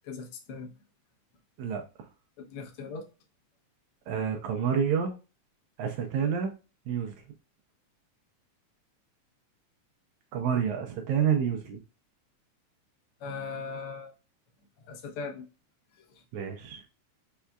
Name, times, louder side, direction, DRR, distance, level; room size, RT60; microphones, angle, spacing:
voice 1, 0.0-0.7 2.4-3.0 13.2-14.1 14.8-15.4 16.0-16.2, left 4 dB, 65° left, 3 dB, 1.5 m, -39 dB
voice 2, 1.6-2.1 4.1-5.1 5.8-6.5 6.9-7.2 10.3-11.8 16.3-16.8, right 7 dB, 80° right, 4 dB, 2.0 m, -29 dB
5.4 x 3.4 x 2.3 m, 0.31 s
omnidirectional pair, 3.5 m